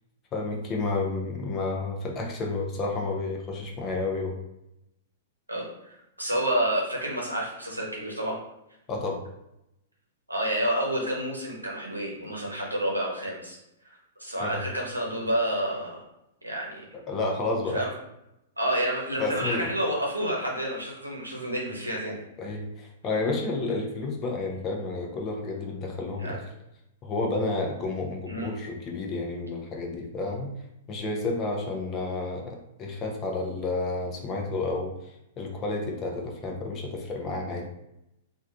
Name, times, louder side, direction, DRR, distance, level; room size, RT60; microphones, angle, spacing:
voice 1, 0.3-4.4 8.9-9.2 14.4-14.6 17.1-17.8 19.2-19.7 22.4-26.4 27.0-37.7, left 3 dB, 25° left, 1 dB, 0.6 m, -31 dB
voice 2, 5.5-8.4 10.3-13.6 13.8-16.0 16.4-16.9 17.7-17.9 18.6-22.2 26.2-26.3 28.3-28.5, right 1 dB, 85° right, -3 dB, 0.9 m, -29 dB
3.3 x 2.5 x 2.3 m, 0.85 s
figure-of-eight pair, 105°, 0 cm